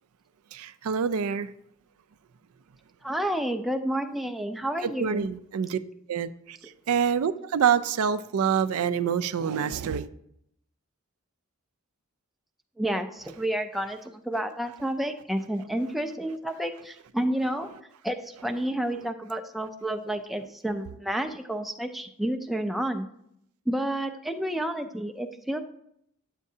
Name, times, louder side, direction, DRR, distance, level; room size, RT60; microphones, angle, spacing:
voice 1, 0.5-1.5 4.8-5.8 6.1-6.6 6.9-10.1, right 7 dB, 75° right, 0.4 m, -26 dB
voice 2, 3.0-5.3 12.8-17.7 18.0-23.1 23.7-25.6, right 1 dB, ahead, 0.4 m, -30 dB
9.6 x 7.4 x 2.7 m
head